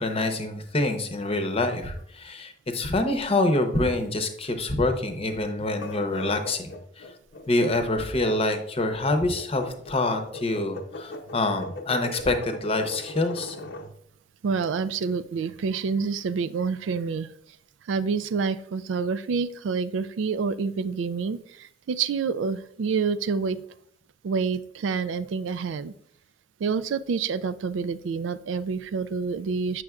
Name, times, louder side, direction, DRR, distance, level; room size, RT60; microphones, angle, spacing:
voice 1, 0.0-7.0 7.5-13.6, left 2 dB, 30° left, 6 dB, 0.8 m, -26 dB
sound 1, 5.8-13.9, left 2 dB, 65° left, 0.7 m, -39 dB
voice 2, 14.4-17.3 17.8-23.6 24.2-25.9 26.6-29.8, right 5 dB, 85° right, 14 dB, 0.4 m, -28 dB
7.6 x 6.2 x 2.3 m, 0.70 s
head